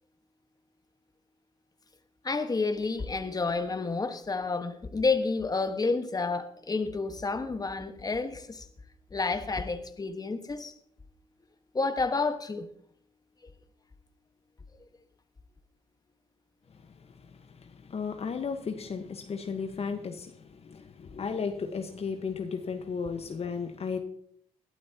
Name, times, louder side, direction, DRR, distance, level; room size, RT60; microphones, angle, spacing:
voice 1, 2.2-8.6 9.1-10.7 11.7-12.7, left 3 dB, 25° left, 1.4 m, -30 dB
voice 2, 16.7-24.0, left 5 dB, 45° left, 1.3 m, -35 dB
20.5 x 12.0 x 2.9 m
supercardioid pair, 55°, 14 cm